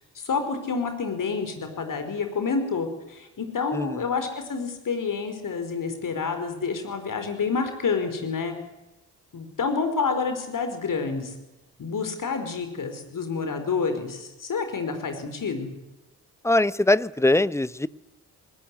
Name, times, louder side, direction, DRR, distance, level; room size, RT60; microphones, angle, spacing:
voice 1, 0.2-8.5 9.3-11.3 11.8-15.7, left 5 dB, 45° left, 7 dB, 5.0 m, -28 dB
voice 2, 16.4-17.9, left 2 dB, 5° left, 19 dB, 0.8 m, -21 dB
20.0 x 19.0 x 9.9 m, 0.97 s
figure-of-eight pair, 40°, 45 cm